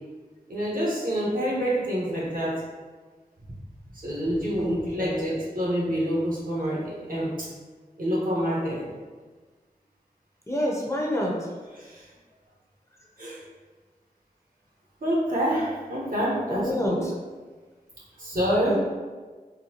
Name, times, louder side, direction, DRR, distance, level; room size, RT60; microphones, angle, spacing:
voice 1, 0.5-2.5 3.9-7.5 8.0-8.8 11.7-12.1 13.2-13.4 15.0-17.0 18.2-18.8, equal, 65° right, -5 dB, 1.1 m, -27 dB
voice 2, 4.6-5.3 10.5-11.3 16.5-17.1 18.7-18.8, left 1 dB, 20° left, -3 dB, 0.7 m, -28 dB
3.9 x 2.2 x 2.9 m, 1.4 s
wide cardioid pair, 50°, 16 cm